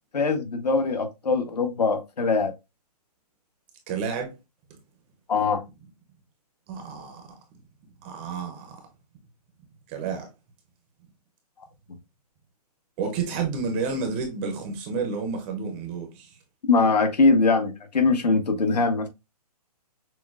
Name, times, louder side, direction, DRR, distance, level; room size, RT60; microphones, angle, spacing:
voice 1, 0.1-2.5 5.3-5.6 16.7-19.1, left 4 dB, 80° left, 1.1 m, -22 dB
voice 2, 3.9-4.3 6.7-7.4 8.0-8.8 9.9-10.3 13.0-16.4, right 5 dB, 15° right, 0.4 m, -30 dB
6.0 x 2.1 x 2.3 m
hypercardioid pair, 150°, 20 cm